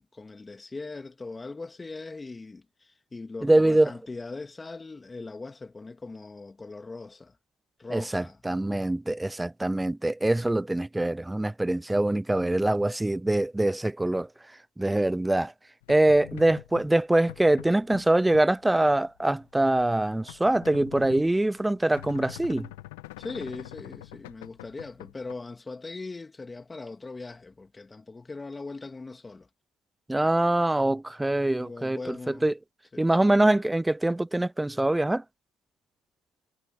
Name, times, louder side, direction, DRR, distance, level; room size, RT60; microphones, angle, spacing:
voice 1, 0.0-7.4 7.8-8.4 23.2-29.5 31.5-32.4 32.9-33.2, left 3 dB, 20° left, 2.5 m, -40 dB
voice 2, 3.4-3.9 7.9-14.3 14.8-15.5 15.9-22.7 30.1-32.5 33.0-35.2, right 1 dB, 10° right, 0.3 m, -24 dB
sound 1, 15.8-25.3, left 18 dB, 90° left, 1.1 m, -45 dB
supercardioid pair, 75°, 0 cm